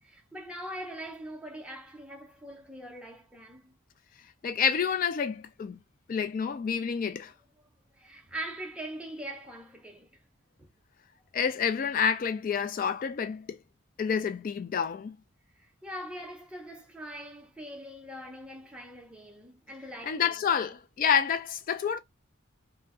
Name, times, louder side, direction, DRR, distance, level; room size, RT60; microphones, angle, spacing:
voice 1, 0.0-3.8 4.4-4.5 7.9-10.2 10.6-10.7 15.6-20.8, right 1 dB, 5° right, 0.6 m, -42 dB
voice 2, 4.4-5.8 6.1-7.3 11.3-13.6 14.0-15.2 20.1-22.0, left 7 dB, 45° left, 0.3 m, -28 dB
2.4 x 2.1 x 3.5 m
head